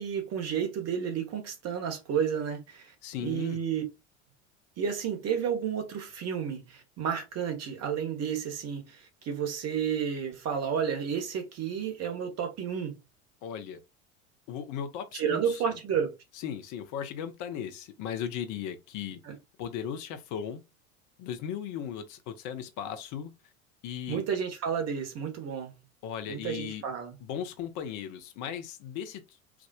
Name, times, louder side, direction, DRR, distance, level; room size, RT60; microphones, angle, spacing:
voice 1, 0.0-2.9 3.2-3.8 4.8-13.0 15.1-16.1 19.2-19.3 24.1-25.8 26.3-27.2, right 7 dB, 40° right, 1.4 m, -31 dB
voice 2, 3.0-3.6 13.4-13.8 14.5-15.8 16.3-19.2 19.6-20.6 21.2-23.3 23.8-24.2 26.0-26.8 27.2-29.4, left 8 dB, 50° left, 0.9 m, -37 dB
4.8 x 2.5 x 2.3 m
figure-of-eight pair, 75°, 40 cm